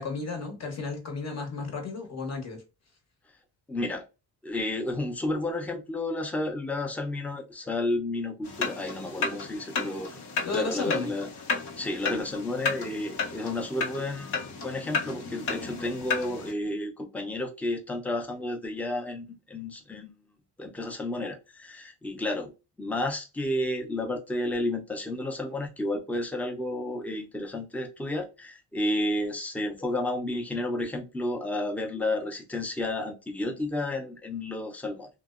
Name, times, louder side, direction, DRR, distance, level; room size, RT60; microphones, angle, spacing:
voice 1, 0.0-2.6 10.4-11.1, left 4 dB, 40° left, 0.9 m, -33 dB
voice 2, 3.7-4.0 4.4-10.2 10.5-11.3 11.8-20.1 20.6-22.5 22.8-35.1, left 1 dB, 5° left, 0.4 m, -31 dB
sound 1, 8.4-16.5, left 4 dB, 70° left, 0.8 m, -33 dB
2.6 x 2.0 x 2.3 m
cardioid pair, 95°, 42 cm